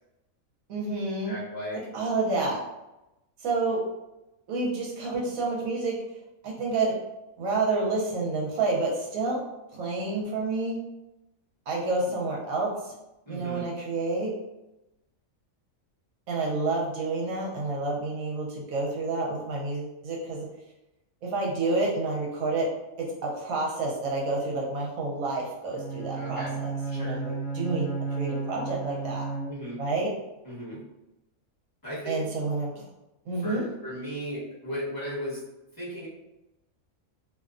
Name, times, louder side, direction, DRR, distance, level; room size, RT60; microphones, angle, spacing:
voice 1, 0.7-1.3 1.7-2.6 3.4-3.8 4.5-6.0 6.4-6.9 7.4-9.4 9.7-10.8 11.7-12.9 13.3-14.3 16.3-20.5 21.2-22.7 23.0-29.3 29.8-30.1 32.1-32.8 33.3-33.7, right 3 dB, 80° right, -2 dB, 1.1 m, -29 dB
voice 2, 1.3-1.8 13.2-13.7 26.2-26.5 26.9-27.2 29.5-29.8 30.4-30.8 31.8-32.2 33.4-35.4 35.8-36.1, equal, 20° left, -9 dB, 0.9 m, -36 dB
Bowed string instrument, 25.7-29.9, right 4 dB, 70° left, 1.0 m, -33 dB
2.6 x 2.2 x 2.4 m, 0.95 s
omnidirectional pair, 1.4 m